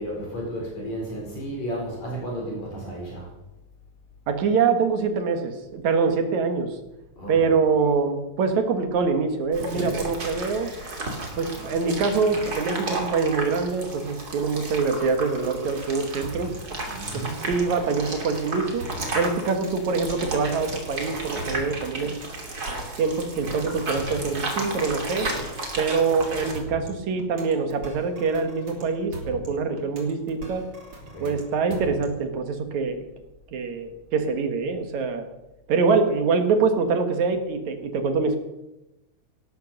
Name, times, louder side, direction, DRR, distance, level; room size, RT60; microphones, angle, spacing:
voice 1, 0.0-3.3 7.2-7.5 16.9-17.4 31.1-31.4, right 1 dB, 60° left, -2 dB, 6.0 m, -33 dB
voice 2, 4.3-6.8 7.3-10.7 11.4-16.5 17.1-18.9 19.1-22.1 23.0-25.3 25.8-30.6 31.2-33.0 33.5-35.3 35.7-38.4, right 4 dB, 70° right, 6 dB, 2.8 m, -24 dB
sound 1, 9.5-26.5, right 2 dB, 30° right, 3.1 m, -33 dB
sound 2, 14.9-32.3, right 1 dB, 45° right, 4.5 m, -41 dB
18.0 x 11.5 x 6.6 m, 0.97 s
omnidirectional pair, 3.5 m